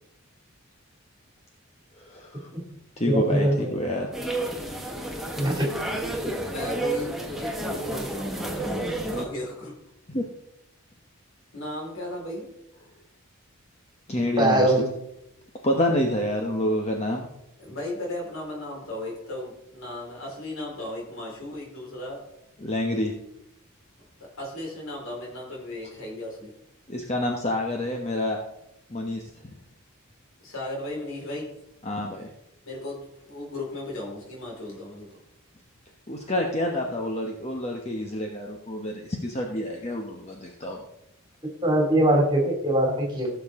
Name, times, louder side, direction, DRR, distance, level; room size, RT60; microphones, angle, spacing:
voice 1, 2.0-2.5 3.0-4.1 10.1-10.2 14.1-14.7 15.6-17.3 22.6-23.1 26.9-28.4 28.9-29.5 31.8-32.3 36.1-40.8, left 1 dB, 30° left, 1 dB, 1.1 m, -28 dB
voice 2, 3.1-3.8 5.4-5.7 14.4-14.8 41.6-43.3, right 1 dB, 20° right, 0 dB, 2.5 m, -21 dB
sound 1, 4.1-9.2, right 1 dB, ahead, 1.1 m, -31 dB
voice 3, 6.5-9.7 11.5-12.5 15.8-15.9 17.6-22.2 24.2-26.5 30.4-31.5 32.6-35.2, left 1 dB, 65° left, -2 dB, 4.4 m, -36 dB
16.0 x 7.1 x 3.7 m, 0.82 s
head